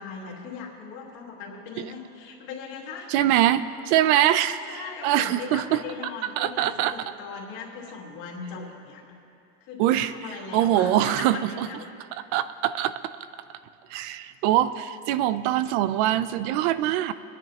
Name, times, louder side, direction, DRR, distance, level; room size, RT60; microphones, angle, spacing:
voice 1, 0.0-3.3 4.2-9.2 9.6-11.9, left 5 dB, 65° left, -2 dB, 2.5 m, -39 dB
voice 2, 3.1-5.8 6.4-6.9 9.8-10.1 10.5-11.7 12.3-13.0 13.9-17.1, right 12 dB, 80° right, 13 dB, 0.6 m, -23 dB
24.0 x 10.5 x 2.9 m, 2.7 s
cardioid pair, 165°, 33 cm